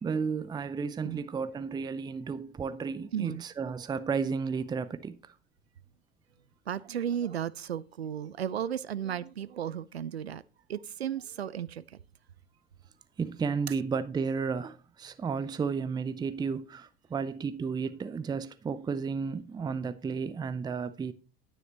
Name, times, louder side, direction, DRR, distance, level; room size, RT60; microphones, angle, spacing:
voice 1, 0.0-5.2 13.2-21.1, right 5 dB, 15° right, 0.6 m, -33 dB
voice 2, 3.1-3.4 6.7-10.4 10.7-11.8, right 9 dB, 85° right, 0.5 m, -34 dB
9.8 x 9.6 x 2.9 m
figure-of-eight pair, 75°, 31 cm